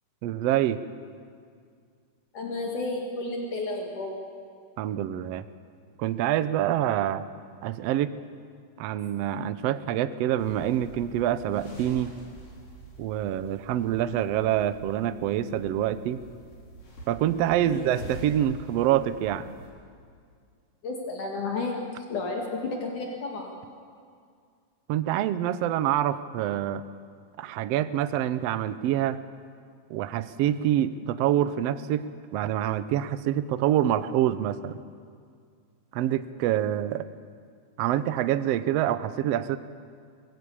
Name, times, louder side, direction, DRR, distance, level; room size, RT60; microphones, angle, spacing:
voice 1, 0.2-0.8 4.8-5.4 6.0-7.2 7.6-8.1 8.8-12.1 13.0-16.2 17.1-19.5 24.9-26.8 27.4-29.2 29.9-32.1 32.3-34.8 35.9-37.1 37.8-39.6, right 11 dB, 85° right, 13 dB, 1.4 m, -26 dB
voice 2, 2.3-4.2 17.6-17.9 20.8-23.5, left 3 dB, 65° left, 0 dB, 3.6 m, -32 dB
sound 1, 10.4-19.7, right 1 dB, 85° left, 6.4 m, -46 dB
23.5 x 18.0 x 8.6 m, 2.1 s
omnidirectional pair, 3.8 m